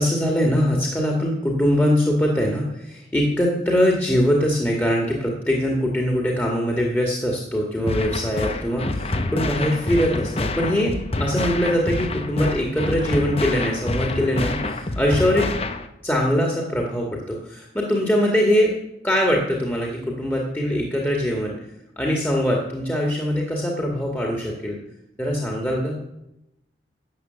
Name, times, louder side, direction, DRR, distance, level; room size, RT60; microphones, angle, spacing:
voice 1, 0.0-15.5 16.0-18.7 19.0-21.5 22.0-24.8 25.2-26.0, equal, 10° left, 0 dB, 2.0 m, -22 dB
sound 1, 7.9-15.9, left 2 dB, 35° left, 0.9 m, -27 dB
12.5 x 8.1 x 8.1 m, 0.86 s
head